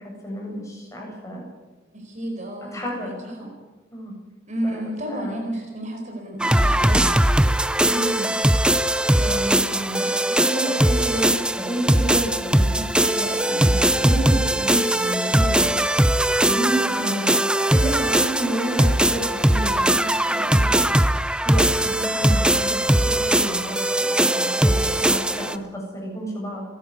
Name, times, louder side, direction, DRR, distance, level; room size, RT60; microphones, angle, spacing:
voice 1, 0.0-1.4 2.7-3.1 3.4-3.5 3.9-4.2 4.6-5.4 7.8-8.5 9.2-10.1 10.4-15.8 16.4-17.3 17.7-20.9 21.4-26.7, right 1 dB, 15° left, -1 dB, 7.8 m, -30 dB
voice 2, 1.9-3.5 4.5-7.2 17.0-17.2, right 1 dB, 40° right, 3 dB, 4.7 m, -32 dB
sound 1, 6.4-25.6, right 1 dB, 5° right, 0.6 m, -20 dB
29.5 x 12.5 x 8.2 m, 1.2 s
head